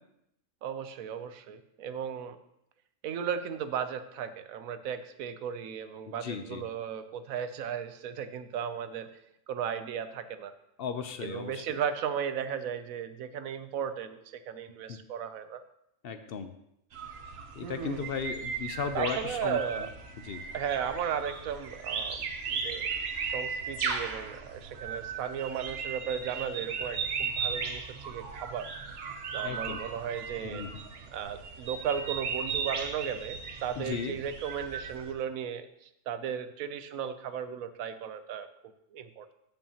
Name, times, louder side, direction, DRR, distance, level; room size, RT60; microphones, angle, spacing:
voice 1, 0.6-2.4 3.0-9.1 9.5-10.5 11.2-15.6 17.6-18.1 18.9-19.9 20.5-28.7 29.3-30.7 31.1-35.7 36.1-38.5 38.9-39.3, right 8 dB, 90° right, 11 dB, 1.1 m, -35 dB
voice 2, 6.2-6.6 10.8-11.8 14.9-15.0 16.0-16.5 17.6-19.9 20.2-20.4 29.4-29.8 30.4-30.7 33.8-34.1, left 6 dB, 60° left, 9 dB, 0.7 m, -36 dB
sound 1, 16.9-35.1, right 5 dB, 55° right, 0.9 m, -37 dB
14.0 x 5.6 x 2.9 m, 0.79 s
omnidirectional pair, 1.4 m